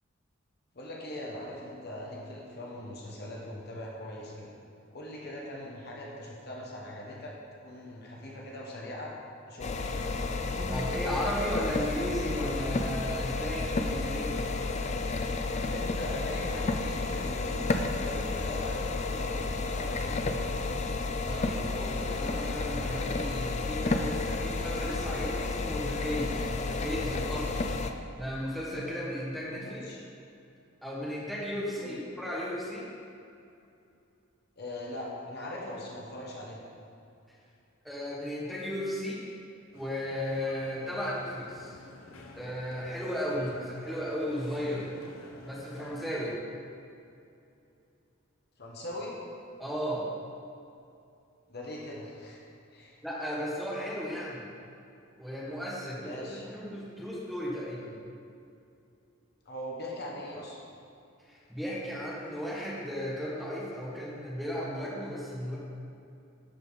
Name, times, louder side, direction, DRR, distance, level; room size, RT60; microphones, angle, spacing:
voice 1, 0.7-4.6 4.9-7.3 7.6-9.1 9.5-9.8 15.5-20.5 29.6-30.0 31.8-31.9 34.6-36.6 43.3-43.5 48.6-49.1 51.5-52.4 52.7-53.0 56.0-56.4 59.4-60.6, left 1 dB, 50° left, -3 dB, 1.3 m, -41 dB
sound 1, 9.6-27.9, left 3 dB, 35° left, 0.4 m, -31 dB
voice 2, 10.5-14.3 21.2-27.7 28.1-29.8 30.8-32.9 37.8-39.2 39.7-41.8 42.3-44.9 45.4-46.4 49.6-50.1 53.0-54.5 55.2-56.2 56.5-58.0 61.3-65.6, equal, ahead, -6 dB, 1.4 m, -35 dB
sound 2, 39.7-46.4, left 2 dB, 85° left, 0.9 m, -50 dB
11.5 x 5.3 x 4.0 m, 2.6 s
head